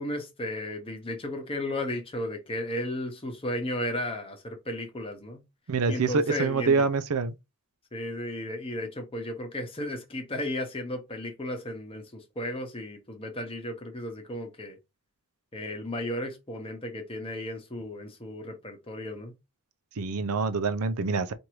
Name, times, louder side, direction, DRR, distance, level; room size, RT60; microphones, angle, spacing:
voice 1, 0.0-5.4 5.9-6.8 7.9-14.8 15.5-19.3, left 1 dB, 25° left, 0.9 m, -34 dB
voice 2, 5.7-7.3 20.0-21.3, right 4 dB, 85° right, 0.5 m, -26 dB
4.6 x 2.6 x 3.1 m
head